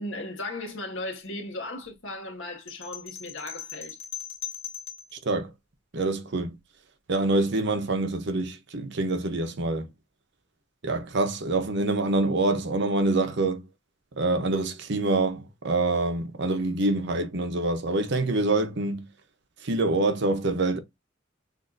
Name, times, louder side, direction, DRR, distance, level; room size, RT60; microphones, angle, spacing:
voice 1, 0.0-4.0, left 2 dB, 75° left, 1.8 m, -36 dB
sound 1, 2.7-5.1, left 8 dB, 30° left, 2.1 m, -39 dB
voice 2, 5.9-6.6 7.1-9.9 10.8-13.6 14.2-19.0 19.6-20.8, right 2 dB, 60° right, 0.9 m, -26 dB
6.5 x 2.7 x 2.6 m
head